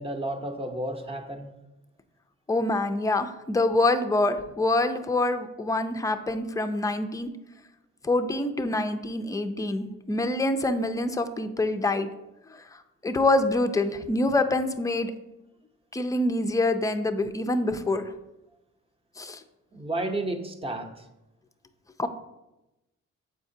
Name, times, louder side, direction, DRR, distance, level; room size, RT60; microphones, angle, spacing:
voice 1, 0.0-1.5 19.7-21.1, right 1 dB, 20° right, 5 dB, 0.8 m, -32 dB
voice 2, 2.5-7.3 8.0-12.1 12.5-15.1 15.9-18.1 19.2-19.4 22.0-22.1, left 2 dB, 10° left, 7 dB, 0.4 m, -26 dB
7.5 x 4.8 x 2.7 m, 0.96 s
cardioid pair, 90°, 30 cm